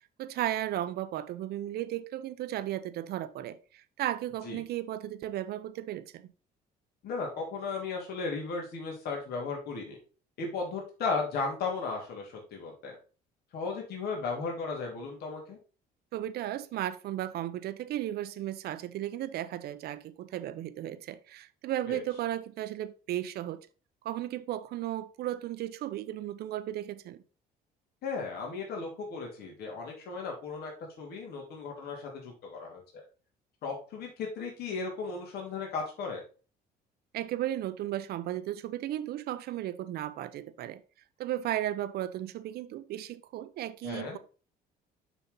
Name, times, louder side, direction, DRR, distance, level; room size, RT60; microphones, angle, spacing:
voice 1, 0.2-6.3 16.1-23.7 24.0-27.2 37.1-40.8 41.2-44.2, right 13 dB, 70° right, 0.8 m, -35 dB
voice 2, 7.0-10.0 10.4-13.0 13.5-15.6 21.9-22.0 28.0-30.7 31.0-33.0 33.6-36.2 43.8-44.2, left 4 dB, 70° left, 3.1 m, -35 dB
7.0 x 5.8 x 3.9 m
cardioid pair, 110°, 17 cm